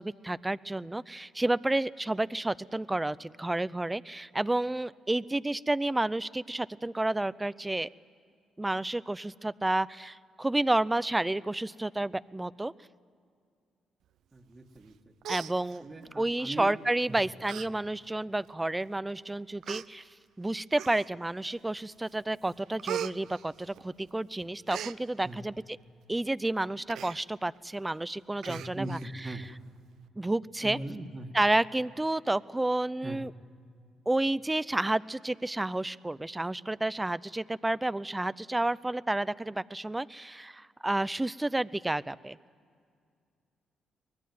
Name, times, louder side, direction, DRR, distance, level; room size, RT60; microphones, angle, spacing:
voice 1, 0.0-7.9 8.6-12.7 15.3-15.9 16.2-20.1 20.4-25.5 26.1-29.0 30.2-30.8 31.3-33.3 34.1-42.4, right 2 dB, 15° right, 18 dB, 0.5 m, -30 dB
voice 2, 14.3-15.0 15.8-16.7 17.1-17.3 17.5-17.6 25.2-25.5 28.5-29.5 30.6-31.3 33.0-33.2, right 2 dB, 30° right, 3 dB, 1.8 m, -40 dB
Human voice, 14.8-14.9 15.2-16.1 16.9-17.0 17.4-17.7 18.1-18.2 18.9-19.0 19.6-19.9 20.7-21.3 21.8-22.1 22.4-24.1 24.4-25.0 26.9-27.2 27.6-27.7 27.9-28.0 28.4-29.1 29.4-29.5, right 10 dB, 75° right, 0.6 m, -39 dB
24.0 x 20.0 x 9.3 m, 2.2 s
cardioid pair, 90°, 0 cm